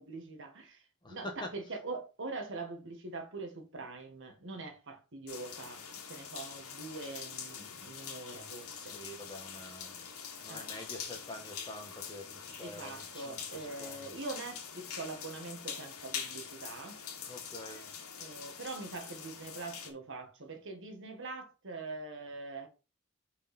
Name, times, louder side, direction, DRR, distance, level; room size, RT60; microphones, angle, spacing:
voice 1, 0.0-0.8 1.1-9.0 10.5-10.7 12.6-17.0 18.2-22.7, right 3 dB, 60° right, 1.6 m, -43 dB
voice 2, 1.0-1.5 8.7-10.1 10.4-14.1 17.3-17.9, left 1 dB, 20° left, 1.5 m, -46 dB
sound 1, 5.3-19.9, left 7 dB, 75° left, 2.0 m, -44 dB
5.6 x 5.2 x 4.3 m
head